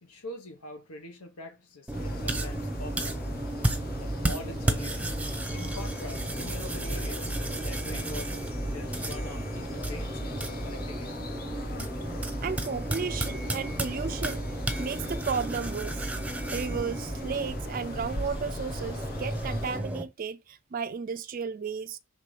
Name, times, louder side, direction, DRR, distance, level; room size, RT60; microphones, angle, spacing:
voice 1, 0.0-3.2 4.0-5.2 5.5-11.1, left 1 dB, 85° left, 1.3 m, -44 dB
sound 1, 1.9-19.8, left 1 dB, 45° left, 1.0 m, -42 dB
sound 2, 1.9-20.0, right 1 dB, 5° right, 0.7 m, -33 dB
voice 2, 12.4-14.5 14.8-16.1 16.5-22.0, right 5 dB, 40° right, 0.3 m, -34 dB
6.0 x 3.7 x 4.9 m
head